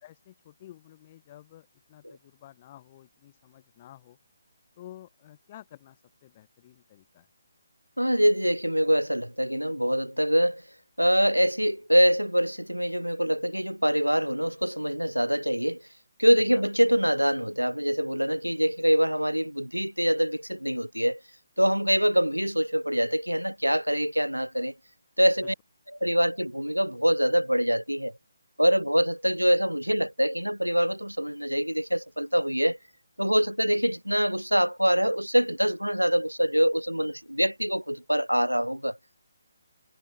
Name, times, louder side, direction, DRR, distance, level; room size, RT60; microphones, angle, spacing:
voice 1, 0.0-4.2 4.8-7.3 16.5-16.6 25.4-25.5, left 13 dB, 30° left, 7.9 m, -51 dB
voice 2, 8.0-10.6 11.0-15.8 16.2-21.2 21.6-24.7 25.2-25.5 26.0-28.1 28.6-32.8 33.2-39.0, equal, 90° right, 3.8 m, -24 dB
figure-of-eight pair, 145°, 0 cm